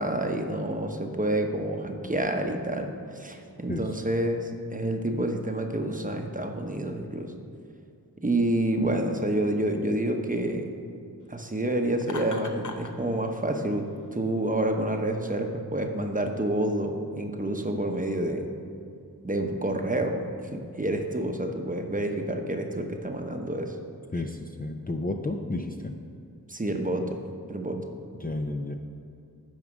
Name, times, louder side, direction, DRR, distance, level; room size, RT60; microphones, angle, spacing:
voice 1, 0.0-7.3 8.2-10.7 11.3-18.5 19.2-23.8 26.5-27.2 27.5-27.8, right 1 dB, 20° right, 4 dB, 0.8 m, -28 dB
Laughter, 12.0-12.9, left 3 dB, 50° left, 0.8 m, -38 dB
voice 2, 24.1-25.9 28.2-28.8, left 2 dB, 25° left, 3 dB, 0.5 m, -31 dB
9.3 x 4.9 x 6.4 m, 2.5 s
wide cardioid pair, 55°, 37 cm